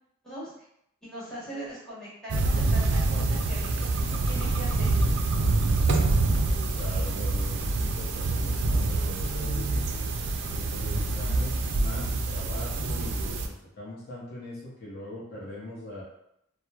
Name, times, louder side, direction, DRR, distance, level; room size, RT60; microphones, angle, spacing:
voice 1, 1.0-5.0, equal, 5° left, -10 dB, 1.0 m, -40 dB
sound 1, 2.3-13.5, right 2 dB, 55° right, 0.3 m, -26 dB
voice 2, 6.6-9.9 10.5-16.0, left 1 dB, 50° left, -6 dB, 0.6 m, -41 dB
2.9 x 2.0 x 2.3 m, 0.77 s
head